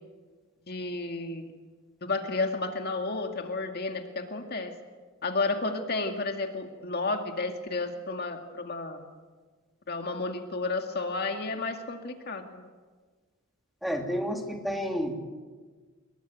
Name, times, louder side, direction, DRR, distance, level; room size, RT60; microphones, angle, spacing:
voice 1, 0.7-1.4 2.0-4.7 5.2-9.0 9.9-12.6, left 3 dB, 50° left, 4 dB, 2.1 m, -32 dB
voice 2, 13.8-15.1, equal, ahead, 2 dB, 3.1 m, -30 dB
26.0 x 22.0 x 9.2 m, 1.4 s
head